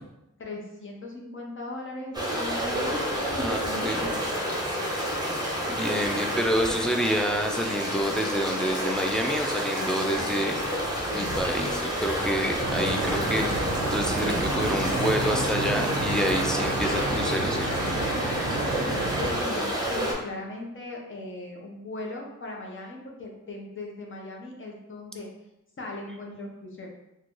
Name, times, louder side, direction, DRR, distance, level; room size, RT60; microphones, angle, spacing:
voice 1, 0.4-3.0 3.3-4.4 4.8-4.9 18.4-25.3 25.8-26.9, left 2 dB, 40° left, -1 dB, 0.7 m, -38 dB
sound 1, 2.1-20.1, equal, 15° right, 0.8 m, -29 dB
voice 2, 5.7-10.5 11.1-17.9, equal, ahead, 2 dB, 0.3 m, -28 dB
sound 2, 12.6-19.4, right 2 dB, 50° right, 0.5 m, -30 dB
3.7 x 2.3 x 3.0 m, 0.89 s
wide cardioid pair, 120°, 30 cm